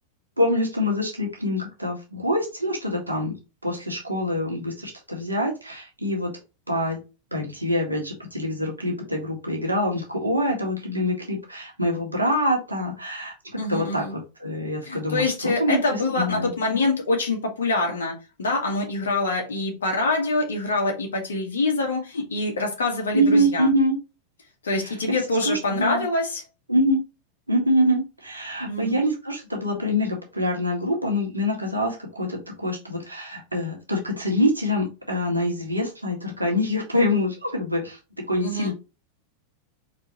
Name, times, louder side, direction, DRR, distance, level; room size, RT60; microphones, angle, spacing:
voice 1, 0.4-3.3 3.6-6.3 6.7-7.0 7.3-16.5 23.1-23.9 24.8-24.9 25.5-26.0 26.7-27.0 27.5-38.7, equal, 80° right, 1.8 m, -25 dB
voice 2, 13.6-14.1 14.8-18.1 18.4-23.7 24.6-26.4 28.7-29.0 38.4-38.7, left 2 dB, 65° left, 1.6 m, -25 dB
4.4 x 4.0 x 3.0 m
figure-of-eight pair, 90°, 0 cm